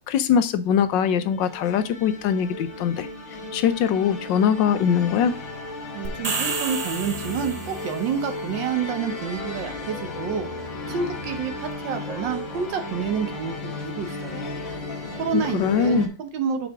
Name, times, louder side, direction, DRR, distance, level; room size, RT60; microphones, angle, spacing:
voice 1, 0.1-3.1 3.5-5.3 15.3-16.1, left 8 dB, 90° left, 1.4 m, -22 dB
sound 1, 0.7-16.1, left 2 dB, 50° left, 2.0 m, -35 dB
voice 2, 5.9-10.5 10.9-14.6 15.2-16.7, right 7 dB, 90° right, 1.7 m, -29 dB
sound 2, 6.0-8.0, right 4 dB, 60° right, 0.4 m, -30 dB
7.4 x 4.9 x 3.5 m
omnidirectional pair, 1.9 m